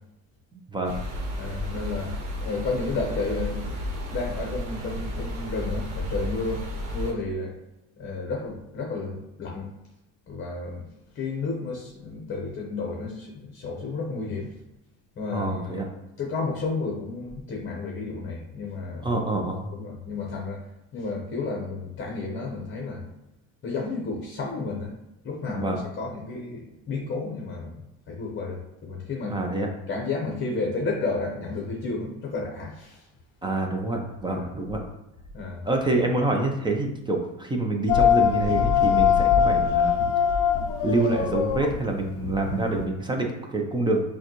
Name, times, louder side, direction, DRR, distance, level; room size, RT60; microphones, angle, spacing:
voice 1, 0.5-1.0 15.3-15.9 19.0-19.7 25.5-25.8 29.3-29.7 33.4-34.8 35.6-40.1 40.8-44.0, right 2 dB, 10° right, 2 dB, 0.5 m, -26 dB
sound 1, 0.8-7.1, left 1 dB, 50° right, 1.2 m, -32 dB
voice 2, 1.4-3.8 4.1-7.5 8.0-9.7 10.3-10.9 11.1-14.5 15.2-15.6 16.2-19.1 19.7-20.6 20.9-23.0 23.6-24.9 25.2-29.4 29.9-33.1 34.3-34.4 35.3-35.6, left 3 dB, 30° left, -1 dB, 0.9 m, -32 dB
sound 2, 37.9-42.9, left 8 dB, 50° left, 0.5 m, -22 dB
6.2 x 2.3 x 3.0 m, 0.91 s
cardioid pair, 125°, 39 cm